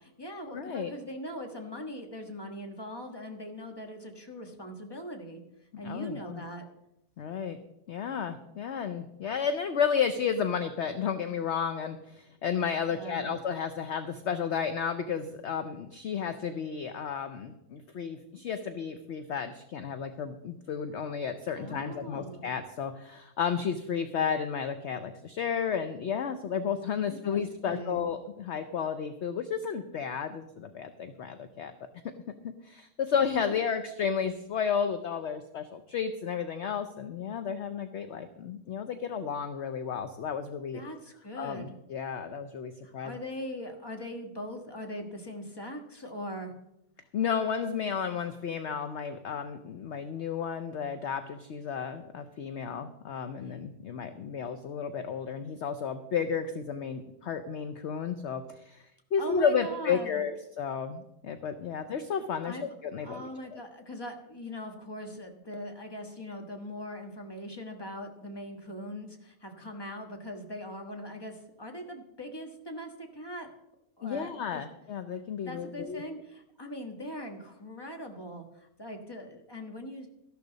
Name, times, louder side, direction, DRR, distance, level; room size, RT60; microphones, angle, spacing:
voice 1, 0.0-5.4 5.8-6.7 12.9-13.4 21.6-22.5 27.0-28.1 40.7-41.8 42.8-46.5 53.4-53.6 59.2-60.2 62.4-62.7 63.0-73.5 74.0-74.6 75.4-80.1, equal, 15° left, 4 dB, 1.4 m, -41 dB
voice 2, 0.5-0.9 5.8-6.4 7.2-7.6 7.9-31.7 32.4-40.8 41.3-43.2 47.1-58.8 59.1-62.6 62.8-63.6 74.0-76.0, left 7 dB, 55° left, 9 dB, 0.8 m, -32 dB
13.0 x 11.5 x 4.0 m, 0.86 s
omnidirectional pair, 1.6 m